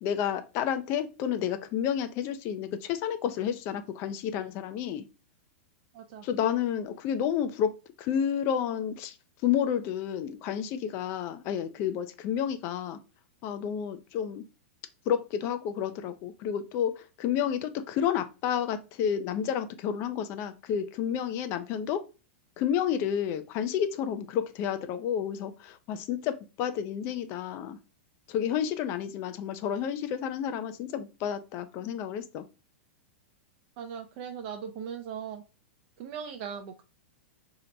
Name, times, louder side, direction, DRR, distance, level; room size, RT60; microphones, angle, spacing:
voice 1, 0.0-5.0 6.2-9.2 9.4-13.0 13.4-14.4 15.1-22.0 22.6-27.8 28.3-32.4, left 9 dB, 40° left, 10 dB, 0.3 m, -30 dB
voice 2, 5.9-6.3 33.8-35.4 36.0-36.8, right 7 dB, 50° right, 6 dB, 0.4 m, -39 dB
2.7 x 2.1 x 3.8 m, 0.31 s
hypercardioid pair, 110°, 7 cm